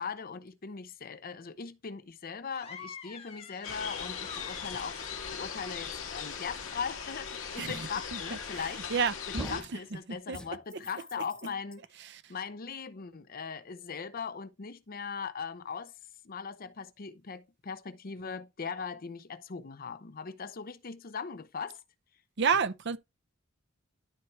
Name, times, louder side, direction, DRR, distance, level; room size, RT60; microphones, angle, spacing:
voice 1, 0.0-8.8 9.4-11.8 12.3-15.9 16.2-21.8, left 5 dB, 45° left, 0.7 m, -39 dB
sound 1, 2.5-6.9, left 6 dB, 30° left, 1.2 m, -49 dB
sound 2, 3.6-9.6, left 7 dB, 80° left, 2.0 m, -39 dB
sound 3, 8.6-9.0 9.4-9.8 10.3-11.8, equal, 5° left, 0.9 m, -43 dB
voice 2, 8.9-9.6 10.3-10.4 12.1-12.2 22.4-23.0, right 6 dB, 55° right, 0.7 m, -29 dB
12.0 x 4.6 x 3.1 m
head